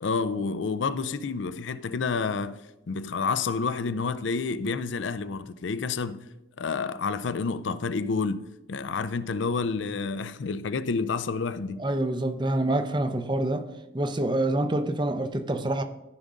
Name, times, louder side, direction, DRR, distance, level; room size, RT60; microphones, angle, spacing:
voice 1, 0.0-2.6 2.9-6.3 6.6-11.8, left 4 dB, 70° left, 0.5 m, -29 dB
voice 2, 11.8-13.7 13.9-15.8, right 1 dB, 25° right, 0.6 m, -26 dB
14.0 x 5.2 x 3.7 m
head